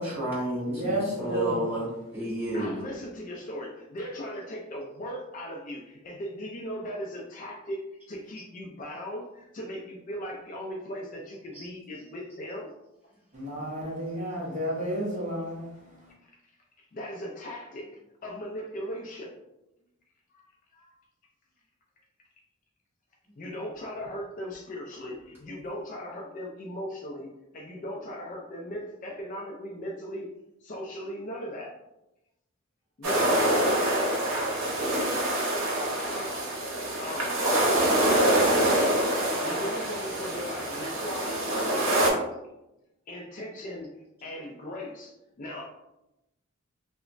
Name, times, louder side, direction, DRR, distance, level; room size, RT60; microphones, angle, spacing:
voice 1, 0.0-2.8 11.5-11.7, right 1 dB, 10° right, -11 dB, 1.1 m, -31 dB
voice 2, 0.7-1.8 13.3-16.1, equal, 35° right, -5 dB, 0.7 m, -32 dB
voice 3, 2.5-7.8 8.1-12.7 16.9-17.9 18.2-19.3 20.3-20.4 20.7-20.9 23.4-27.3 27.5-30.3 30.6-31.7 33.0-34.1 36.0-36.4 37.0-37.5 39.4-42.3 43.1-43.9 44.2-45.1 45.4-45.7, equal, 40° left, -1 dB, 0.3 m, -38 dB
sound 1, 33.0-42.1, right 1 dB, 80° right, 0.7 m, -25 dB
2.9 x 2.1 x 2.4 m, 0.90 s
head